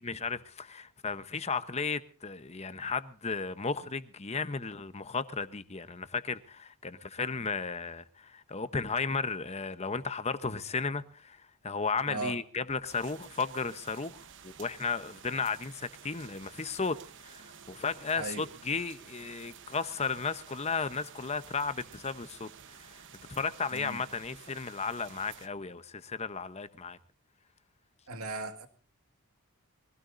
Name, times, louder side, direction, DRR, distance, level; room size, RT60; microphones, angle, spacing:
voice 1, 0.0-17.0 17.2-23.0 23.3-27.0, left 4 dB, 30° left, 0.9 m, -34 dB
voice 2, 12.1-12.4 18.1-18.4 23.7-24.0 28.1-28.7, right 3 dB, 75° right, 2.1 m, -37 dB
sound 1, 12.9-25.5, right 8 dB, 55° right, 1.1 m, -52 dB
23.5 x 17.0 x 2.7 m
head